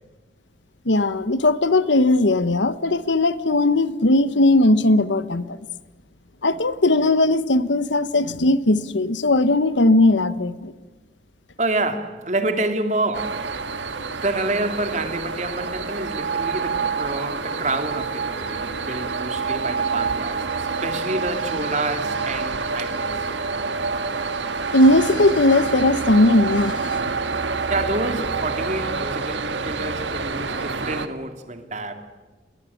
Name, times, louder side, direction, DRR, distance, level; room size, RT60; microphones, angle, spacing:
voice 1, 0.8-5.6 6.4-10.7 24.7-27.0, left 2 dB, 90° left, 1.2 m, -18 dB
voice 2, 11.6-13.4 14.1-23.3 27.7-31.9, right 2 dB, 40° right, 2.6 m, -28 dB
sound 1, 13.1-31.1, right 4 dB, 90° right, 1.8 m, -27 dB
29.5 x 21.5 x 8.6 m
head